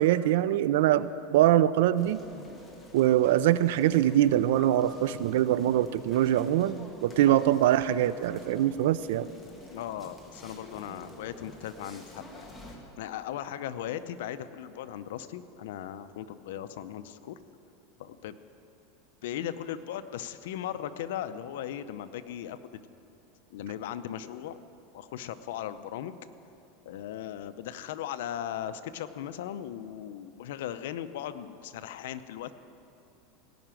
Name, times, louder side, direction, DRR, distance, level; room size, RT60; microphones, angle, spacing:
voice 1, 0.0-2.2 2.9-9.3, right 12 dB, 75° right, 16 dB, 0.4 m, -23 dB
sound 1, 2.0-12.8, left 1 dB, 10° left, 1.8 m, -49 dB
voice 2, 9.7-17.4 18.0-18.4 19.2-22.8 23.5-24.6 24.9-26.2 26.9-32.5, left 10 dB, 80° left, 12 dB, 0.6 m, -38 dB
17.5 x 6.0 x 9.0 m, 2.9 s
supercardioid pair, 140°, 0 cm